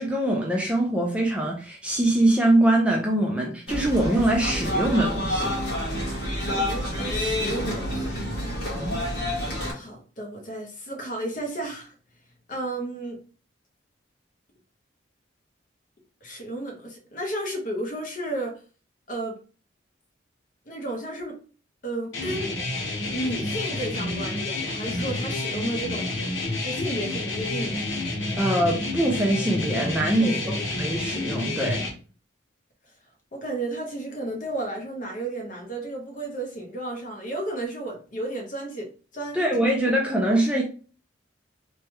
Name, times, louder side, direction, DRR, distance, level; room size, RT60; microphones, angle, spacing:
voice 1, 0.0-5.5 8.8-9.0 28.4-31.8 39.3-40.6, right 1 dB, 5° right, 0.4 m, -23 dB
sound 1, 3.7-9.7, equal, 60° left, 1.3 m, -28 dB
voice 2, 6.4-8.6 9.7-11.9 12.5-13.2 16.2-18.6 19.1-19.4 20.7-21.4 21.8-22.5 23.1-26.2 26.6-27.8 30.1-30.7 33.3-39.6, right 1 dB, 40° left, 0.8 m, -33 dB
sound 2, 22.1-31.9, left 2 dB, 80° left, 0.9 m, -29 dB
3.2 x 2.2 x 2.9 m
head